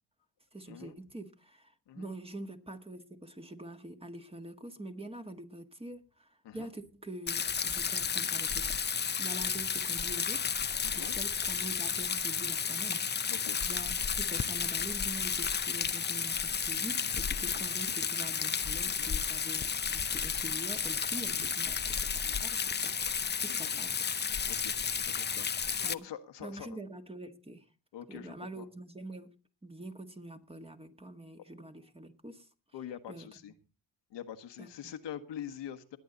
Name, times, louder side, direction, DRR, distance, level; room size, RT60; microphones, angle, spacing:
voice 1, 0.5-8.8 9.2-10.5 10.9-13.0 13.6-22.9 23.4-24.0 25.8-26.1 26.4-27.6 28.1-29.3 29.6-32.5 33.1-33.3 34.6-34.7, right 1 dB, 10° right, 6 dB, 1.7 m, -45 dB
Rain, 7.3-25.9, left 6 dB, 25° left, 0.6 m, -32 dB
voice 2, 10.8-11.2 13.3-13.6 17.0-17.1 17.4-17.7 18.9-19.1 22.2-22.4 23.5-23.7 24.5-25.5 25.8-26.8 27.9-28.7 32.7-33.5 34.1-36.0, left 9 dB, 65° left, 8 dB, 1.5 m, -45 dB
20.5 x 8.5 x 4.0 m, 0.33 s
supercardioid pair, 75°, 45 cm